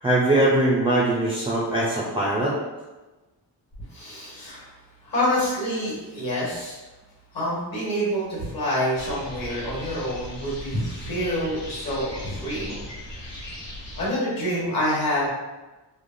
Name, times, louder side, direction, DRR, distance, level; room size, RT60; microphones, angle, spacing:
voice 1, 0.0-2.6, right 1 dB, 15° right, -4 dB, 0.3 m, -21 dB
voice 2, 3.9-4.7 5.0-6.8 7.3-12.9 14.0-15.3, equal, 50° left, -6 dB, 1.3 m, -27 dB
sound 1, 9.0-14.1, left 1 dB, 75° left, 1.2 m, -38 dB
3.2 x 2.1 x 2.5 m, 1.1 s
wide cardioid pair, 140°, 44 cm